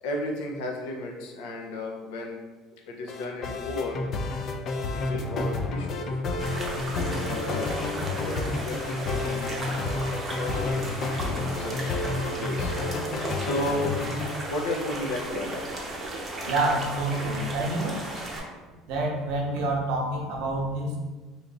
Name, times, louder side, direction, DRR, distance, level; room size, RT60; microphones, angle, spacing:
voice 1, 0.0-2.4 2.9-4.1 4.9-6.2 6.9-7.8 8.2-9.5 10.3-12.0 12.4-14.0 14.5-15.7, left 1 dB, 85° left, 1 dB, 0.6 m, -34 dB
sound 1, 3.1-14.3, left 3 dB, 35° left, 0.3 m, -30 dB
sound 2, 6.4-18.4, right 2 dB, 15° right, 0.7 m, -35 dB
voice 2, 16.4-18.0 18.9-21.0, right 2 dB, 65° right, 0 dB, 0.8 m, -27 dB
2.9 x 2.5 x 3.9 m, 1.3 s
cardioid pair, 155°, 0 cm